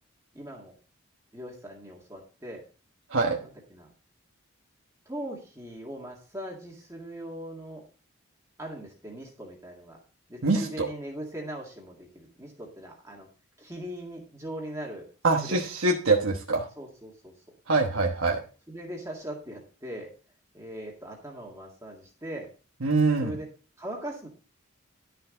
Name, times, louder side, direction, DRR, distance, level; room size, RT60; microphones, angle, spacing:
voice 1, 0.3-0.7 1.3-2.6 3.4-3.9 5.1-7.8 8.6-10.0 10.3-13.3 13.6-15.0 15.4-15.6 16.8-17.3 18.7-20.1 20.5-22.5 23.2-23.5 23.8-24.3, right 1 dB, 15° right, -2 dB, 2.0 m, -40 dB
voice 2, 10.4-10.9 15.2-16.7 17.7-18.4 22.8-23.3, right 3 dB, 75° right, 0 dB, 1.2 m, -24 dB
11.5 x 6.8 x 3.8 m, 0.36 s
head